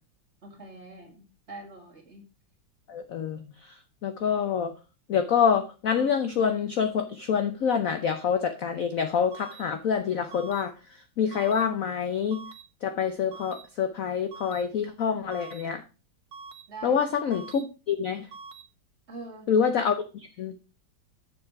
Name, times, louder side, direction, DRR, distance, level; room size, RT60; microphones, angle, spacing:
voice 1, 0.4-2.2 15.1-15.4 16.7-17.0 19.1-19.5, right 3 dB, 35° right, 0 dB, 2.0 m, -44 dB
voice 2, 2.9-4.7 5.1-12.4 12.8-15.8 16.8-18.3 19.5-20.6, left 7 dB, 70° left, 8 dB, 0.8 m, -27 dB
sound 1, 9.3-9.6 10.3-10.6 11.3-11.6 12.3-12.6 13.3-13.6 14.3-14.6 15.3-15.6 16.3-16.6 17.3-17.6 18.3-18.6, right 5 dB, 85° right, 1.8 m, -44 dB
7.0 x 6.8 x 4.7 m, 0.32 s
omnidirectional pair, 2.3 m